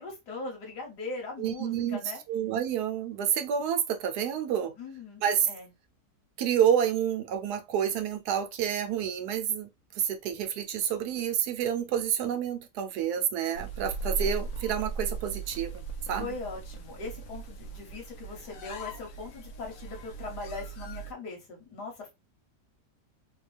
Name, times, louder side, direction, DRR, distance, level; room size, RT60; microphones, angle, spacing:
voice 1, 0.0-2.2 4.7-5.7 11.8-11.9 16.1-22.1, left 3 dB, 85° left, 1.7 m, -40 dB
voice 2, 1.4-2.0 2.3-4.7 5.2-5.5 6.4-9.7 9.9-16.3, right 9 dB, 75° right, 1.2 m, -29 dB
sound 1, 13.5-21.1, right 4 dB, 65° left, 1.0 m, -38 dB
3.6 x 2.3 x 3.3 m
omnidirectional pair, 1.7 m